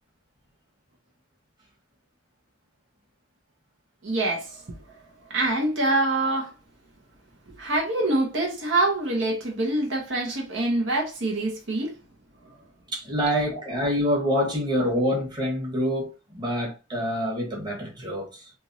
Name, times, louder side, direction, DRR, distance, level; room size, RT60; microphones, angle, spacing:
voice 1, 4.0-4.6 5.3-6.5 7.6-11.9 13.5-13.6, right 2 dB, 70° right, 1.0 m, -25 dB
voice 2, 12.9-18.5, equal, 20° right, 1.3 m, -26 dB
3.4 x 3.0 x 2.7 m
head